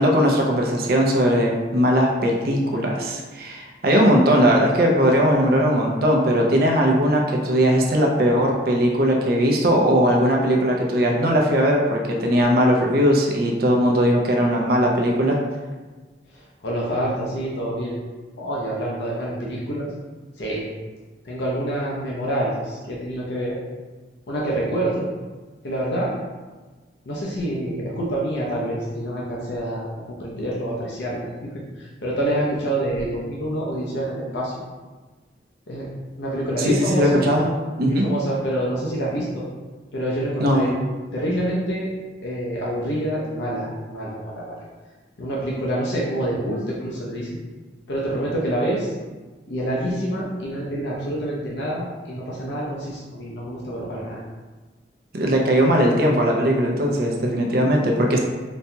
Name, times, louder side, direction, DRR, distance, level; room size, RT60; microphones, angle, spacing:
voice 1, 0.0-15.4 36.6-37.5 37.8-38.1 40.4-40.7 55.1-58.2, equal, 55° right, 0 dB, 0.5 m, -19 dB
voice 2, 16.3-18.0 18.4-19.9 20.4-20.6 21.2-23.6 24.3-25.1 25.6-26.1 27.1-34.5 35.7-35.9 36.2-37.2 37.9-39.4 39.9-40.7 41.1-41.9 42.2-44.6 45.2-47.3 47.9-48.9 49.5-54.2, right 1 dB, 75° left, -5 dB, 0.6 m, -27 dB
4.1 x 2.8 x 2.2 m, 1.3 s
head